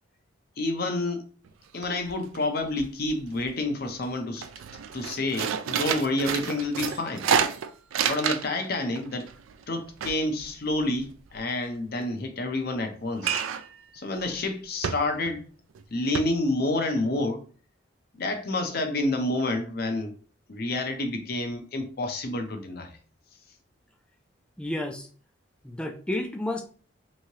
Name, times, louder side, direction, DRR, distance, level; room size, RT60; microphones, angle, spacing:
voice 1, 0.6-1.2 1.7-4.5 4.9-7.3 8.0-9.3 9.7-13.4 13.9-15.4 15.9-17.4 18.1-20.1 20.5-22.9, left 2 dB, 50° left, 0.6 m, -29 dB
sound 1, 1.5-1.6 1.8-2.4 2.7-3.5 3.9-4.0 4.4-8.7 9.0-11.4 13.2-13.8 14.2-14.3 14.8-15.4 15.7-15.8 16.1-16.2, right 7 dB, 80° right, 0.3 m, -29 dB
voice 2, 24.6-25.1 25.6-26.6, left 1 dB, 5° left, 0.3 m, -31 dB
3.1 x 2.7 x 2.7 m
head